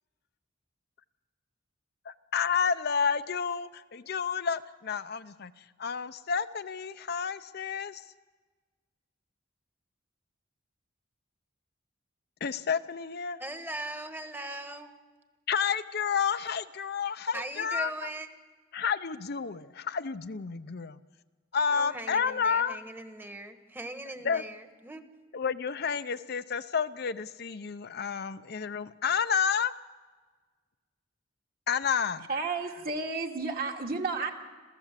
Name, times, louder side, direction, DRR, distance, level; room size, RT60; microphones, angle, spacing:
voice 1, 2.1-5.5 5.8-8.0 12.4-13.4 15.5-18.1 18.7-21.0 21.5-22.8 24.2-24.4 25.3-29.7 31.7-32.3, left 6 dB, 55° left, 0.6 m, -30 dB
voice 2, 13.4-14.9 17.3-18.3 21.7-25.0, right 1 dB, 10° right, 1.3 m, -40 dB
voice 3, 32.3-34.3, right 4 dB, 50° right, 2.4 m, -32 dB
27.0 x 15.5 x 7.5 m
head